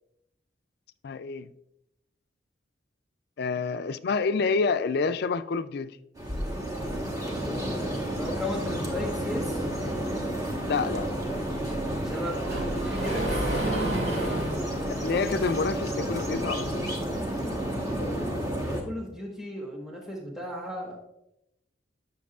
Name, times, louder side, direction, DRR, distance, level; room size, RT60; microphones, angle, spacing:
voice 1, 1.0-1.5 3.4-5.9 10.7-11.2 15.0-17.0, left 4 dB, 60° left, 0.4 m, -28 dB
sound 1, 6.2-18.8, right 1 dB, 20° right, 1.2 m, -31 dB
voice 2, 7.3-9.7 11.9-13.6 18.6-21.1, left 1 dB, ahead, 1.3 m, -36 dB
Sliding door, 10.9-15.9, right 1 dB, 60° right, 2.4 m, -33 dB
9.4 x 6.6 x 2.4 m
head